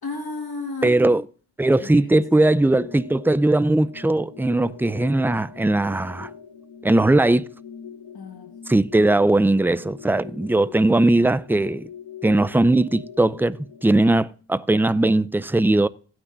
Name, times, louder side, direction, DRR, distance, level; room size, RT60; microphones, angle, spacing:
voice 1, 0.0-1.1 1.7-2.5 8.1-8.5, left 3 dB, 50° left, 2.0 m, -34 dB
voice 2, 0.8-1.2 1.6-6.3 6.8-7.5 8.7-11.9 12.2-15.9, right 2 dB, 5° right, 0.5 m, -19 dB
sound 1, 2.1-14.0, left 7 dB, 65° left, 1.7 m, -43 dB
16.5 x 6.1 x 2.6 m
supercardioid pair, 45°, 47 cm